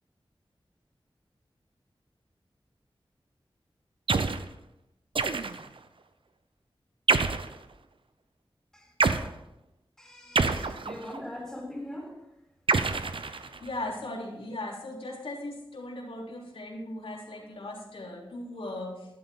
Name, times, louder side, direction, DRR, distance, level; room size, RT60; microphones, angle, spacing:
sound 1, 4.1-4.5 5.1-5.8 7.1-7.6 9.0-9.3 10.3-11.2 12.7-13.7, right 4 dB, 65° right, 0.8 m, -27 dB
voice 1, 10.0-12.1, left 1 dB, 5° left, -1 dB, 5.0 m, -41 dB
voice 2, 13.6-19.1, left 1 dB, 80° left, -3 dB, 3.5 m, -38 dB
12.5 x 12.0 x 3.8 m, 0.88 s
wide cardioid pair, 70°, 9 cm